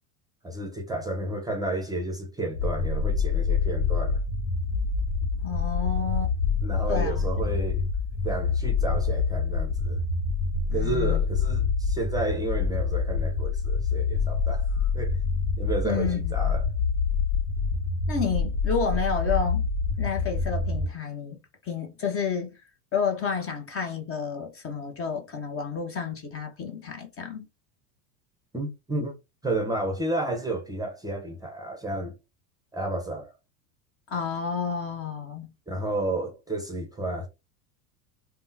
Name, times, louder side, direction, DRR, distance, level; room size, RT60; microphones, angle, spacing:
voice 1, 0.4-4.2 6.6-7.8 8.2-10.0 10.7-15.2 15.6-16.6 28.5-29.1 29.4-32.1 32.7-33.3 35.7-37.3, right 2 dB, 10° right, 0.7 m, -31 dB
sound 1, 2.5-20.9, left 5 dB, 80° left, 1.0 m, -26 dB
voice 2, 5.3-6.3 6.9-7.6 10.7-11.2 15.8-16.5 18.1-19.7 20.0-22.5 22.9-27.5 34.1-35.5, left 5 dB, 25° left, 0.7 m, -30 dB
3.4 x 2.2 x 2.7 m
hypercardioid pair, 95°, 50 cm